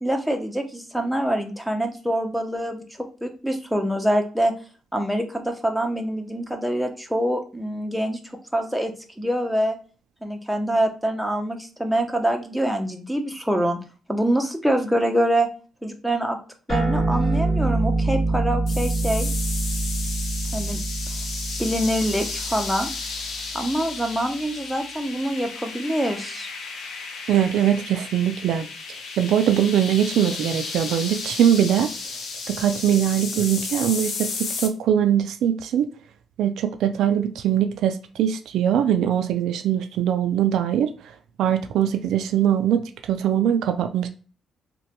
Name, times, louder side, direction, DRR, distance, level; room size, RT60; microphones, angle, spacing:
voice 1, 0.0-4.5 4.9-8.2 8.5-9.8 10.2-13.8 14.1-15.5 15.8-16.4 16.7-19.3 20.5-20.8 21.6-22.9 23.5-26.5, right 1 dB, ahead, 0.6 m, -25 dB
sound 1, 16.7-23.5, right 2 dB, 30° left, 1.5 m, -26 dB
sound 2, 18.7-34.7, left 4 dB, 70° left, 0.6 m, -33 dB
voice 2, 27.3-28.7 29.2-31.9 32.5-35.9 36.4-40.9 41.4-44.1, right 10 dB, 80° right, 0.3 m, -21 dB
3.0 x 2.2 x 2.9 m
cardioid pair, 90°, 0 cm